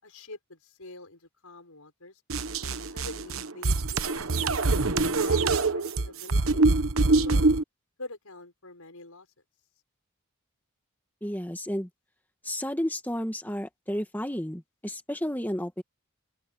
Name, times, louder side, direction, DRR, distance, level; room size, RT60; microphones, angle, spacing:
voice 1, 0.0-2.2 2.6-4.5 5.2-6.7 7.1-7.6 8.0-9.3, left 2 dB, 85° left, 6.3 m, -45 dB
sound 1, 2.3-7.6, right 3 dB, 70° right, 1.1 m, -24 dB
voice 2, 11.2-11.9 12.4-15.8, equal, 10° left, 1.9 m, -32 dB
open air
head